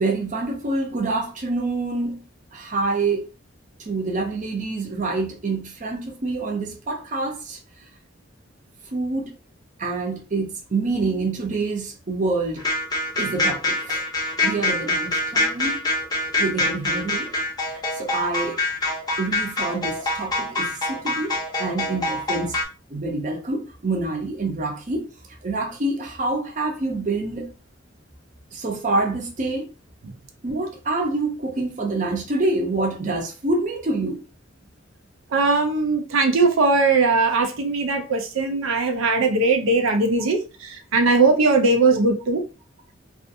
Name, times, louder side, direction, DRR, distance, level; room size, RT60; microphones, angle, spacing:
voice 1, 0.0-2.2 2.5-3.3 3.9-7.6 8.9-9.3 9.8-12.6 13.2-14.0 14.4-15.8 16.4-17.3 17.7-18.6 19.2-22.5 22.9-25.1 25.4-27.5 28.5-29.7 30.4-34.2, right 3 dB, 40° right, 0.6 m, -26 dB
sound 1, 12.6-22.6, left 2 dB, 20° left, 0.6 m, -25 dB
voice 2, 35.3-42.4, right 3 dB, 85° right, 0.5 m, -20 dB
2.4 x 2.4 x 2.6 m
head